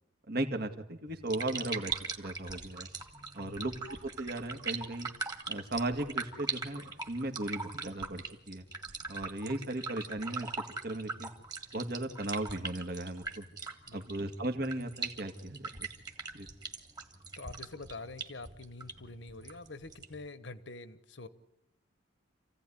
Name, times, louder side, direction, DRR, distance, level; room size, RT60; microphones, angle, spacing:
voice 1, 0.3-2.9 3.3-5.1 5.5-8.6 9.1-10.5 10.8-11.3 11.7-13.5 13.9-15.9 16.3-16.5, right 1 dB, 55° right, 6 dB, 1.9 m, -36 dB
sound 1, 1.1-20.2, right 4 dB, 20° right, 1.8 m, -41 dB
voice 2, 3.4-3.7 13.9-14.2 17.4-21.3, left 3 dB, 70° left, 13 dB, 1.3 m, -46 dB
28.0 x 16.0 x 9.9 m, 0.86 s
head